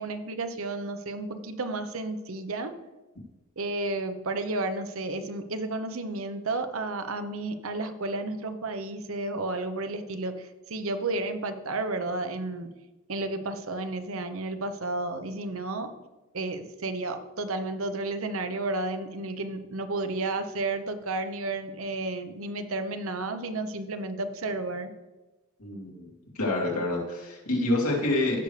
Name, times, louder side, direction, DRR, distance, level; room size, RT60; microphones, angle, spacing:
voice 1, 0.0-2.8 3.6-12.7 13.1-15.9 16.3-24.9, right 2 dB, 70° right, 8 dB, 0.9 m, -32 dB
voice 2, 25.6-26.1 26.4-28.4, left 2 dB, 85° left, -2 dB, 2.8 m, -27 dB
16.0 x 6.5 x 3.3 m, 1.1 s
head